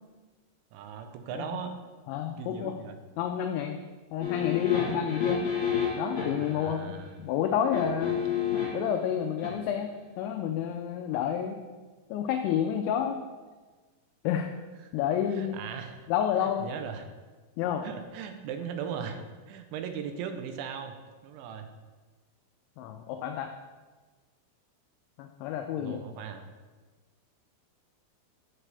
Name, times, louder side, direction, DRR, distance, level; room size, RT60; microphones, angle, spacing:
voice 1, 0.7-1.8 2.4-3.0 6.4-7.1 15.3-16.1 16.6-17.1 17.8-19.2 19.5-21.0 21.2-21.7 25.7-26.5, right 7 dB, 80° right, 6 dB, 2.9 m, -38 dB
voice 2, 2.1-2.8 3.2-3.7 4.1-5.5 6.0-8.2 8.7-11.6 12.1-13.2 14.2-14.5 14.9-15.6 16.1-16.7 17.6-17.8 22.8-23.5 25.2-26.0, left 9 dB, 85° left, 4 dB, 2.7 m, -30 dB
sound 1, 4.2-6.5 7.7-8.9 9.4-9.5, left 7 dB, 45° left, 3.7 m, -29 dB
11.0 x 7.4 x 3.4 m, 1.3 s
omnidirectional pair, 5.6 m